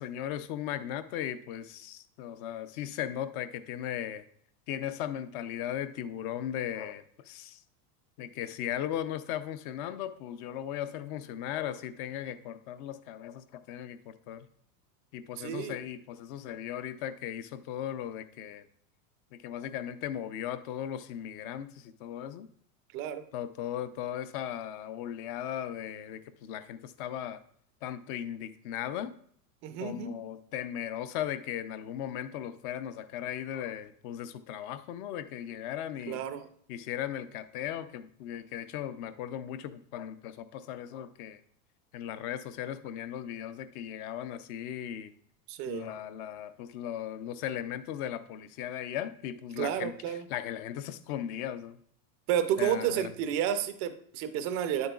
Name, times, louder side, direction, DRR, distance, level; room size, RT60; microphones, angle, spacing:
voice 1, 0.0-4.2 4.7-7.6 8.2-14.5 15.1-18.7 19.3-22.5 23.3-27.4 27.8-29.1 29.8-36.2 36.7-41.4 41.9-45.1 45.7-51.8 52.6-53.1, left 10 dB, 35° left, 13 dB, 0.4 m, -37 dB
voice 2, 15.4-15.8 22.9-23.2 29.6-30.1 36.1-36.5 45.5-45.9 49.6-50.3 52.3-54.9, right 10 dB, 30° right, 10 dB, 0.4 m, -31 dB
9.4 x 7.8 x 2.3 m, 0.63 s
supercardioid pair, 150°, 46 cm